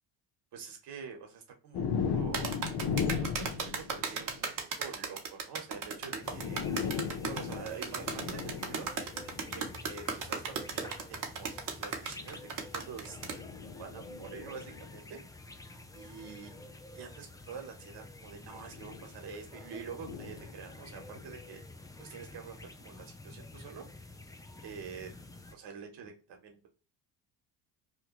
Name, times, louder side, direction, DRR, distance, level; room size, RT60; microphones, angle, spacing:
voice 1, 0.5-2.5 3.2-6.6 7.2-8.9 9.5-11.5 11.8-12.4 12.7-13.2 13.8-15.2 15.9-16.5 16.9-21.6 22.0-23.9 24.6-25.1 25.5-26.7, right 6 dB, 60° right, 3 dB, 1.3 m, -46 dB
sound 1, 1.7-4.5 5.8-5.9 6.2-9.8 10.6-10.9 12.1-15.0 16.5-16.7 18.4-19.1 19.9-21.3, left 6 dB, 60° left, 0.8 m, -37 dB
sound 2, 2.3-13.4, right 5 dB, 45° right, 1.0 m, -36 dB
sound 3, 6.2-25.5, left 2 dB, 10° left, 0.3 m, -49 dB
3.1 x 2.3 x 2.9 m, 0.34 s
supercardioid pair, 70°, 46 cm